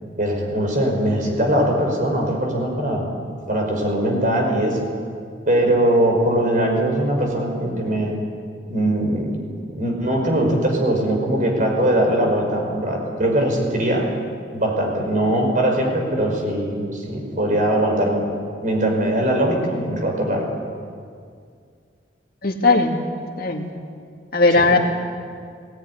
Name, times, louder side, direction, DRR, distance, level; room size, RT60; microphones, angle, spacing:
voice 1, 0.2-4.9 5.5-8.2 8.7-9.5 9.7-14.1 14.5-18.2 18.6-20.5 24.6-24.8, right 1 dB, 45° right, 1 dB, 5.2 m, -21 dB
voice 2, 22.4-23.0 23.4-23.7 24.3-24.8, left 3 dB, 55° left, 2 dB, 2.3 m, -17 dB
20.0 x 18.0 x 9.9 m, 2.2 s
head